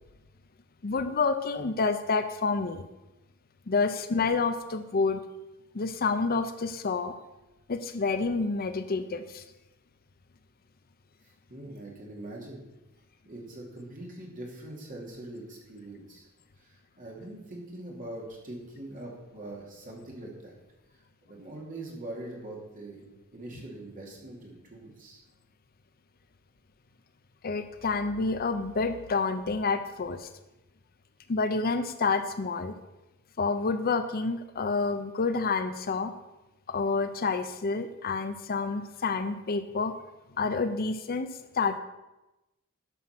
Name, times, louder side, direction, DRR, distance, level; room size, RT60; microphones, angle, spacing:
voice 1, 0.8-2.8 3.7-5.2 5.7-7.1 7.7-9.4 27.4-30.3 31.3-32.8 33.4-36.1 36.7-39.9 40.4-41.3 41.5-41.8, left 4 dB, 45° left, 10 dB, 0.6 m, -28 dB
voice 2, 11.5-12.6 13.2-16.3 16.6-20.5 20.9-25.2, right 1 dB, 40° right, -2 dB, 2.7 m, -43 dB
12.0 x 5.9 x 5.9 m, 1.0 s
head